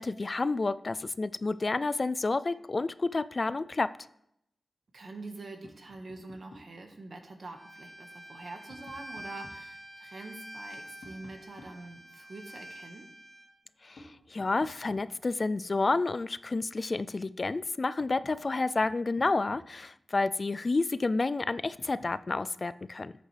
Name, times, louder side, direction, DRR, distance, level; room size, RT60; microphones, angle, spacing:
voice 1, 0.0-3.9 13.8-23.1, left 3 dB, 45° left, 15 dB, 0.3 m, -30 dB
voice 2, 4.9-13.1, right 2 dB, 60° right, 4 dB, 1.6 m, -45 dB
Tap, 5.6-6.8 8.2-9.7 11.0-12.5 14.0-15.5 17.3-17.4 17.8-20.0 21.6-22.2, left 2 dB, 70° left, 1.9 m, -54 dB
Bowed string instrument, 7.5-13.5, right 1 dB, 35° right, 5.1 m, -47 dB
13.5 x 8.8 x 3.4 m, 0.79 s
cardioid pair, 65°, 0 cm